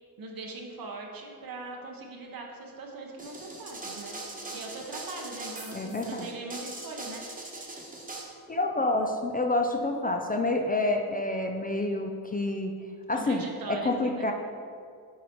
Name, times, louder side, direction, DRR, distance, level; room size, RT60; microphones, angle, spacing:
voice 1, 0.2-4.2 4.5-7.2 13.1-14.3, right 3 dB, 60° right, 0 dB, 0.9 m, -40 dB
sound 1, 3.2-8.2, right 2 dB, 20° right, 1.2 m, -41 dB
voice 2, 5.7-6.3 8.5-12.7 13.1-14.3, left 2 dB, 25° left, 3 dB, 0.4 m, -28 dB
8.2 x 4.8 x 4.4 m, 2.3 s
wide cardioid pair, 130°, 40 cm